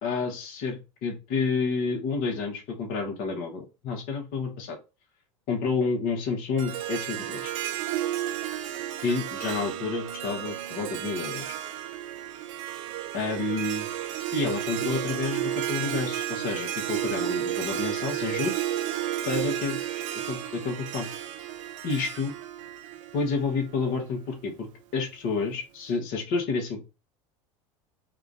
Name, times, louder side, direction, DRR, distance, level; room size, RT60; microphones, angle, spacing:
voice 1, 0.0-4.8 5.5-7.5 9.0-11.5 13.1-13.9 14.3-18.6 19.2-19.8 20.3-21.1 21.8-22.3 23.1-26.8, left 4 dB, 55° left, 2 dB, 1.3 m, -29 dB
Harp, 6.6-23.8, right 12 dB, 70° right, 0.5 m, -32 dB
3.7 x 2.4 x 3.6 m, 0.29 s
hypercardioid pair, 95°, 17 cm